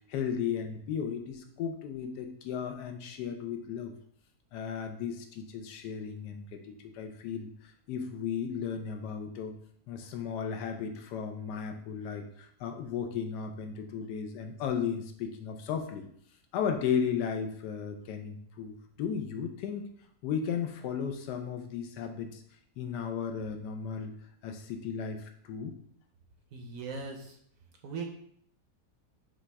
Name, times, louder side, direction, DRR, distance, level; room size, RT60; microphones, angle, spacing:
voice 1, 0.1-3.9 4.5-9.5 9.9-16.0 16.5-19.9 20.2-22.4 22.8-24.2 24.4-25.7, left 7 dB, 90° left, 6 dB, 1.2 m, -35 dB
voice 2, 26.5-27.4 27.8-28.1, right 4 dB, 65° right, 2 dB, 0.9 m, -39 dB
5.8 x 2.4 x 3.3 m, 0.65 s
omnidirectional pair, 1.7 m